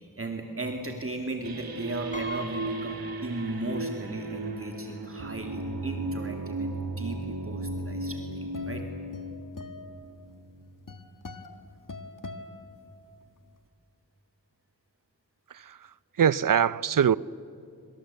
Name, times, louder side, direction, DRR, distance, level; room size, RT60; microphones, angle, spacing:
voice 1, 0.0-8.8, right 2 dB, 40° right, 2.6 m, -36 dB
sound 1, 1.4-10.8, right 2 dB, 90° right, 2.0 m, -36 dB
Piano, 2.1-3.9 4.3-4.4 5.5-5.6 5.9-6.2, left 1 dB, 20° left, 3.6 m, -41 dB
sound 2, 7.9-13.4, left 3 dB, 60° left, 1.8 m, -44 dB
voice 2, 15.5-15.9 16.2-17.2, right 8 dB, 65° right, 0.6 m, -23 dB
25.5 x 25.0 x 8.5 m
wide cardioid pair, 85°, 35 cm